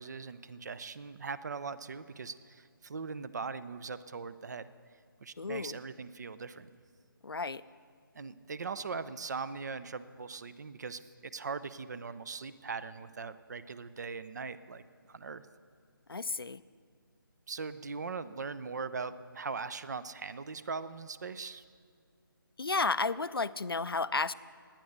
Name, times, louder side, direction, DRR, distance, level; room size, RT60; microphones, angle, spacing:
voice 1, 0.0-4.7 5.2-6.7 8.1-14.8 15.1-15.4 17.5-21.6, right 4 dB, 50° right, 14 dB, 0.6 m, -40 dB
voice 2, 5.4-5.8 7.2-7.6 16.1-16.6 22.6-24.3, left 4 dB, 85° left, 15 dB, 0.5 m, -32 dB
19.5 x 8.8 x 6.6 m, 2.1 s
figure-of-eight pair, 155°, 12 cm